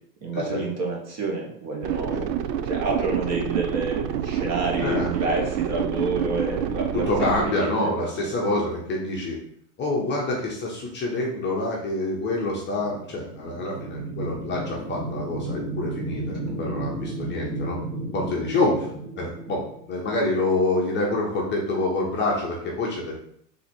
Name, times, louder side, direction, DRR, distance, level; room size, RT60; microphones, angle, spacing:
voice 1, 0.2-2.3 2.6-8.3 16.5-16.7, right 3 dB, 35° right, -1 dB, 1.1 m, -29 dB
sound 1, 1.8-7.5, right 9 dB, 75° right, 0.6 m, -28 dB
voice 2, 4.8-5.1 7.1-9.4 9.8-17.8 18.1-18.9 19.2-23.1, left 2 dB, 20° left, -2 dB, 0.8 m, -27 dB
sound 2, 12.6-20.3, right 2 dB, 10° right, 0.4 m, -33 dB
4.0 x 2.8 x 4.3 m, 0.68 s
supercardioid pair, 135°, 49 cm